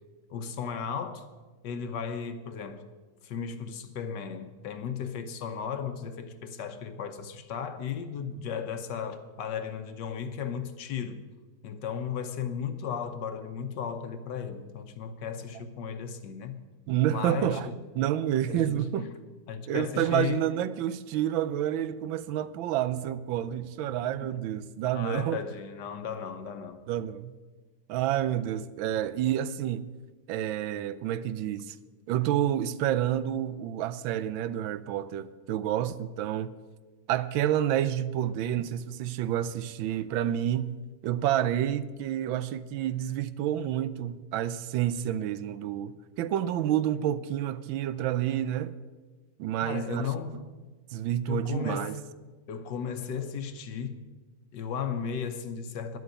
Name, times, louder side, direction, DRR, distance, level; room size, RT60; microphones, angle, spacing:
voice 1, 0.3-1.2 1.6-2.9 3.2-11.2 11.6-16.6 17.1-17.8 18.5-19.1 19.5-20.5 24.2-24.3 24.9-26.8 49.6-50.4 51.3-52.0 52.5-54.1 54.5-56.0, left 7 dB, 65° left, 1.4 m, -35 dB
voice 2, 16.9-17.7 18.0-19.1 19.7-25.4 26.9-27.3 27.9-29.9 30.3-31.8 32.1-36.5 37.1-40.7 41.0-48.7 49.4-50.1 50.9-52.0, right 11 dB, 85° right, 1.4 m, -29 dB
11.0 x 7.9 x 9.2 m
omnidirectional pair, 2.1 m